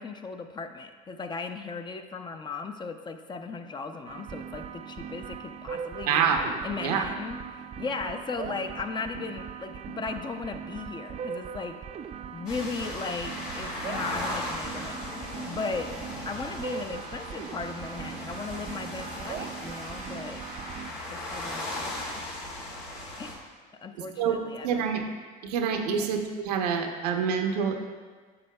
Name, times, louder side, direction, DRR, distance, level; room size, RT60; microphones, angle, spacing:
voice 1, 0.0-6.3 6.6-11.8 12.3-15.9 16.3-20.4 21.1-22.3 23.2-23.4 23.8-24.8 25.9-26.1, left 4 dB, 25° left, 7 dB, 0.5 m, -37 dB
sound 1, 4.1-20.9, right 7 dB, 30° right, 0.4 m, -40 dB
voice 2, 6.1-6.5 6.8-7.0 24.2-24.4 24.6-25.0 25.4-27.8, right 7 dB, 90° right, 3 dB, 0.8 m, -26 dB
sound 2, 12.5-23.3, left 1 dB, 90° left, 2.1 m, -37 dB
9.6 x 6.5 x 2.3 m, 1.5 s
supercardioid pair, 95°, 20 cm